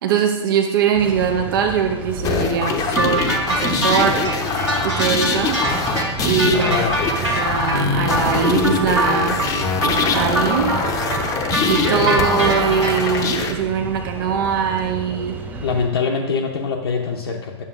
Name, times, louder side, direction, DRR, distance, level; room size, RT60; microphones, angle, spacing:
voice 1, 0.0-4.2 4.8-5.6 6.2-6.9 7.2-9.4 9.8-10.8 11.7-15.4, right 7 dB, 50° right, 4 dB, 0.7 m, -21 dB
sound 1, 0.9-15.9, right 3 dB, 10° right, 0.6 m, -31 dB
sound 2, 2.2-13.5, left 4 dB, 20° left, 0.7 m, -23 dB
sound 3, 3.0-13.2, right 1 dB, 85° right, 2.1 m, -24 dB
voice 2, 6.3-7.0 15.6-17.6, left 5 dB, 60° left, 1 dB, 0.7 m, -23 dB
9.9 x 6.8 x 2.5 m, 1.1 s
figure-of-eight pair, 105°, 15 cm